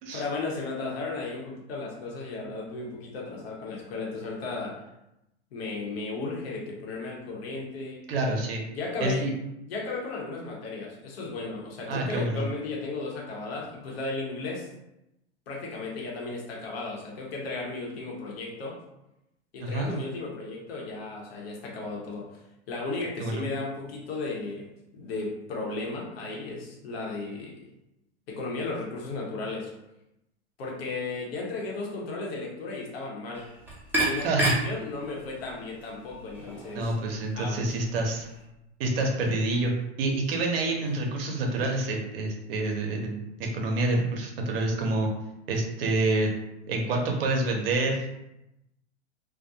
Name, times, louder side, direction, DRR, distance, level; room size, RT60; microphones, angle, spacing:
voice 1, 0.1-4.8 5.5-8.0 8.7-9.2 9.6-14.7 15.5-18.8 19.5-27.7 28.3-29.7 30.6-33.5 34.0-36.9 37.3-37.8 40.8-40.9, left 3 dB, 65° left, -2 dB, 0.9 m, -35 dB
voice 2, 8.1-8.6 9.0-9.3 11.9-12.5 19.6-19.9 23.2-23.4 34.2-34.5 36.7-38.3 38.8-39.7 40.0-45.1 45.5-46.3 46.7-48.1, right 2 dB, 60° right, 1 dB, 0.7 m, -27 dB
sound 1, 33.3-38.4, right 1 dB, 5° right, 0.7 m, -33 dB
2.4 x 2.1 x 2.7 m, 0.89 s
hypercardioid pair, 105°, 33 cm